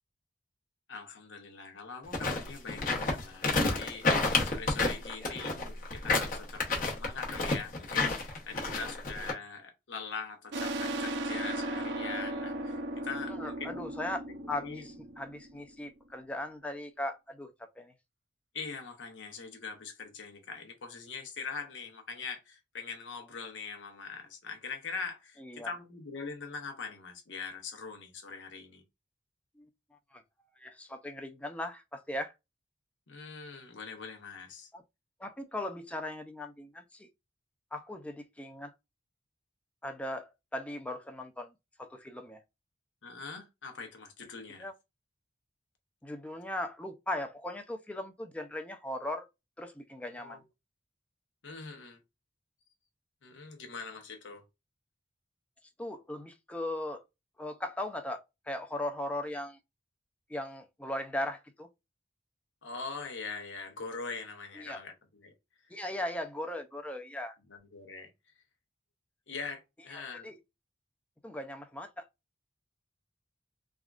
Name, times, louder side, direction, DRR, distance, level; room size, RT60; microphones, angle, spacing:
voice 1, 0.9-13.8 14.3-14.9 18.5-28.8 33.1-34.7 43.0-44.7 50.1-50.4 51.4-52.0 53.2-54.4 62.6-65.3 67.5-68.1 69.3-70.3, left 4 dB, 85° left, 0.8 m, -42 dB
sound 1, 2.0-9.3, left 3 dB, 45° left, 0.8 m, -29 dB
sound 2, 10.5-15.8, right 1 dB, 65° right, 0.5 m, -36 dB
voice 2, 13.4-17.9 25.4-25.7 29.6-29.7 30.1-30.2 30.6-32.3 34.7-34.8 35.2-37.1 37.7-38.7 39.8-41.5 41.8-42.4 44.6-44.7 46.0-49.3 49.6-50.4 55.8-57.0 57.4-58.2 58.5-59.6 60.3-61.7 64.6-64.8 65.7-67.3 69.9-70.4 71.2-72.0, left 1 dB, 5° left, 0.4 m, -38 dB
3.4 x 2.3 x 2.4 m
head